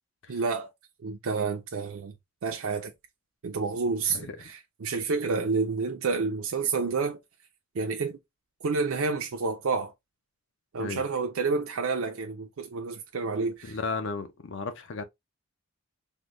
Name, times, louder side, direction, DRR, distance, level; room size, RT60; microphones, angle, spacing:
voice 1, 0.3-0.7 1.0-2.1 2.4-2.9 3.4-7.2 7.7-8.2 8.6-9.9 10.7-13.8, right 4 dB, 70° right, 0.4 m, -29 dB
voice 2, 4.1-4.4 10.8-11.0 13.6-15.0, left 4 dB, 60° left, 0.6 m, -34 dB
3.7 x 2.1 x 3.0 m
head